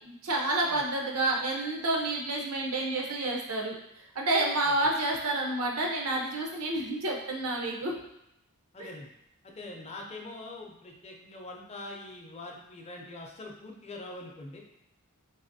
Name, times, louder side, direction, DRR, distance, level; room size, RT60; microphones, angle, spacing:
voice 1, 0.0-3.7 4.1-7.9 8.8-8.9, right 2 dB, 75° right, -1 dB, 0.8 m, -29 dB
voice 2, 8.7-9.1 9.4-14.6, left 2 dB, 30° left, 1 dB, 0.5 m, -43 dB
4.0 x 3.0 x 2.6 m, 0.82 s
head